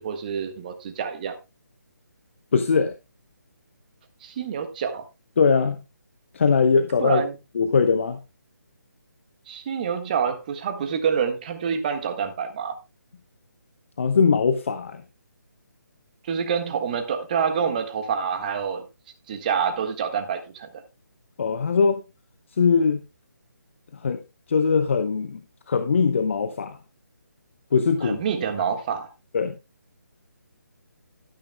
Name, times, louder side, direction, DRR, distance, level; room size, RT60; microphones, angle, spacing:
voice 1, 0.0-1.4 4.2-5.0 7.0-7.4 9.5-12.7 16.2-18.8 19.3-20.7 28.0-29.1, right 7 dB, 25° right, 1.6 m, -27 dB
voice 2, 2.5-2.9 5.4-5.8 6.3-7.2 7.5-8.2 14.0-15.0 21.4-22.0 22.6-23.0 24.0-24.2 24.5-25.4 25.7-26.8 27.7-28.2 28.6-28.7 29.3-29.6, left 5 dB, 40° left, 0.9 m, -21 dB
12.5 x 12.0 x 2.2 m
figure-of-eight pair, 150°, 10 cm